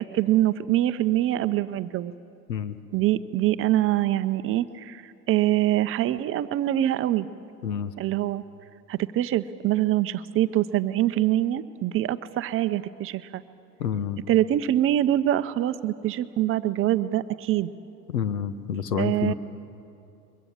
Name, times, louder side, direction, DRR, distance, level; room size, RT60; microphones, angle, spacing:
voice 1, 0.0-2.1 2.9-7.3 8.0-8.4 8.9-13.4 14.3-17.7 19.0-19.3, right 13 dB, 25° right, 13 dB, 0.7 m, -24 dB
voice 2, 13.8-14.2 18.1-19.3, left 8 dB, 80° left, 12 dB, 1.2 m, -28 dB
23.5 x 22.5 x 7.5 m, 2.6 s
figure-of-eight pair, 90°, 49 cm